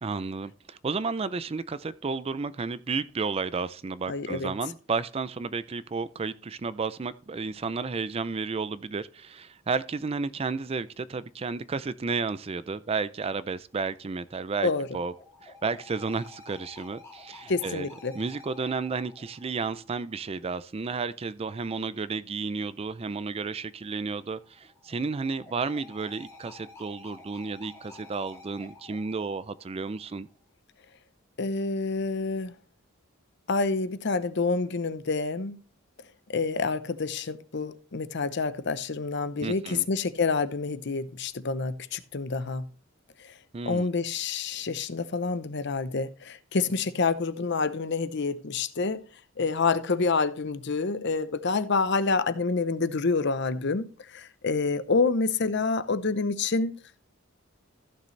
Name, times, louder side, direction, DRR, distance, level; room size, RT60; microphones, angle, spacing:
voice 1, 0.0-15.1 15.4-17.9 18.1-30.3 39.4-39.8 43.5-43.9, right 4 dB, 30° right, 0.4 m, -32 dB
voice 2, 4.1-4.5 14.6-14.9 17.5-18.1 31.4-32.5 33.5-35.6 36.3-42.7 43.2-43.3 43.7-49.0 49.4-56.7, left 4 dB, 60° left, 0.7 m, -28 dB
sound 1, 14.0-20.4 24.0-30.4, left 3 dB, 15° left, 2.5 m, -51 dB
15.0 x 6.6 x 3.2 m
head